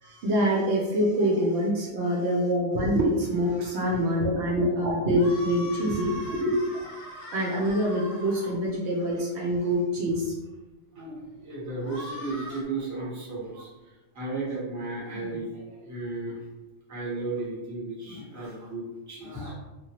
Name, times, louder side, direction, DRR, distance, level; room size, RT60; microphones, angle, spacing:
voice 1, 0.0-6.9 7.3-10.3, equal, 70° right, -2 dB, 0.8 m, -25 dB
sound 1, 5.1-8.5 11.8-12.6, equal, 60° left, 0.7 m, -41 dB
voice 2, 10.9-13.7 14.1-16.4 16.9-19.5, right 2 dB, 20° right, -6 dB, 0.7 m, -34 dB
2.8 x 2.3 x 2.9 m, 1.1 s
omnidirectional pair, 1.3 m